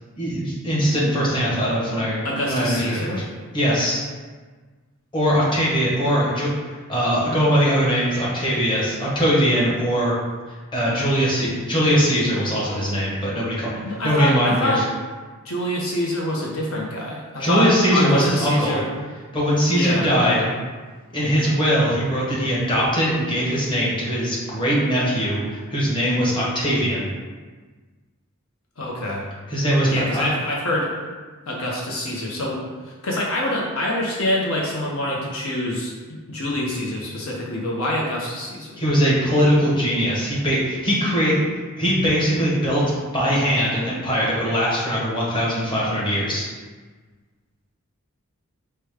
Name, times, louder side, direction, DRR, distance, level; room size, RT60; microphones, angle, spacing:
voice 1, 0.2-3.2 3.5-4.0 5.1-10.1 10.7-13.7 14.0-14.7 17.4-18.8 19.3-20.5 21.1-27.1 29.5-30.2 38.8-41.3 41.8-46.4, equal, 20° left, -7 dB, 1.1 m, -21 dB
voice 2, 2.2-3.3 13.8-14.8 15.4-18.9 19.7-20.1 28.8-29.2 29.9-30.9 31.5-38.8, left 1 dB, 65° left, -3 dB, 0.8 m, -26 dB
5.0 x 2.2 x 4.7 m, 1.4 s
head